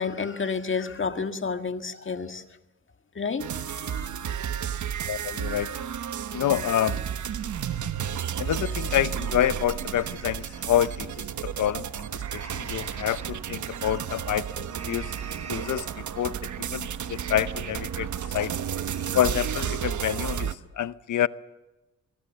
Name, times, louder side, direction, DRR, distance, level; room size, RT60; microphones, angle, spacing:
voice 1, 0.0-2.4 3.1-4.7, left 5 dB, 40° left, 1.8 m, -31 dB
sound 1, 3.4-20.6, right 9 dB, 80° right, 1.2 m, -32 dB
voice 2, 5.1-5.7 6.3-7.0 8.4-15.1 15.5-18.1 18.3-18.5 19.1-21.3, left 11 dB, 90° left, 0.8 m, -28 dB
sound 2, 6.5-8.2 8.6-8.7 9.2-11.0 12.1-13.3 13.8-14.2 14.7-16.2 16.6-16.7 17.0-17.7 18.1-18.5 18.7-19.7, right 5 dB, 60° right, 3.5 m, -46 dB
24.5 x 22.0 x 7.3 m
cardioid pair, 95°, 30 cm